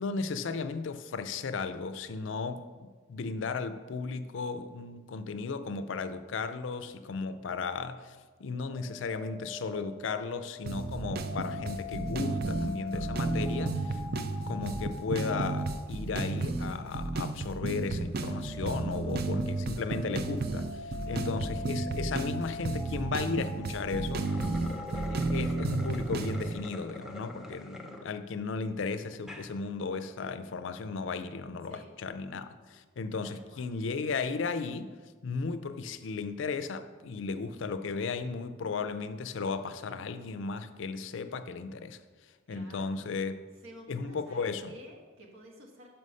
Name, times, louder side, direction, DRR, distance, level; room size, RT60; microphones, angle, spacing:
voice 1, 0.0-14.0 14.5-24.4 24.9-34.9 35.2-42.0 42.5-43.3 43.9-44.7, left 4 dB, 65° left, 11 dB, 0.4 m, -35 dB
sound 1, 8.5-15.8 17.8-25.1, left 3 dB, 35° right, 1.9 m, -44 dB
sound 2, 10.7-26.6, right 3 dB, 50° right, 0.5 m, -33 dB
voice 2, 21.0-21.5 31.7-31.9 33.2-33.7 42.5-43.0 43.6-45.9, right 1 dB, 80° right, 1 dB, 1.4 m, -52 dB
sound 3, 24.1-28.0 28.5-28.6 29.1-29.5, left 2 dB, 5° right, 0.6 m, -45 dB
5.7 x 5.5 x 6.3 m, 1.5 s
head